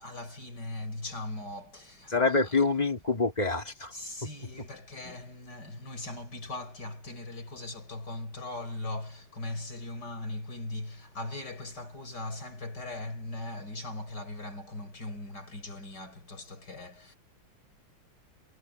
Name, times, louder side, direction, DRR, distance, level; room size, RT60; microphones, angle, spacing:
voice 1, 0.0-2.6 3.9-17.2, left 2 dB, 55° left, 6.0 m, -39 dB
voice 2, 2.1-3.9, left 3 dB, 20° left, 2.4 m, -26 dB
omnidirectional pair, 2.2 m